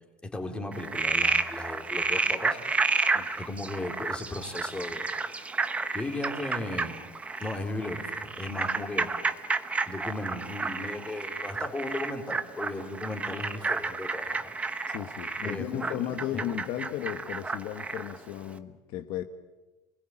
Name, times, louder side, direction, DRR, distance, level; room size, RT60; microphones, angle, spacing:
voice 1, 0.2-2.6 3.4-5.1 5.9-7.0 7.4-9.1 9.9-14.5 15.4-16.4, left 2 dB, 10° left, 3 dB, 3.4 m, -36 dB
Frog, 0.7-18.2, right 4 dB, 10° right, 1.1 m, -31 dB
voice 2, 14.9-19.2, left 12 dB, 55° left, 7 dB, 1.4 m, -35 dB
28.5 x 20.5 x 8.9 m, 1.1 s
cardioid pair, 155°, 11 cm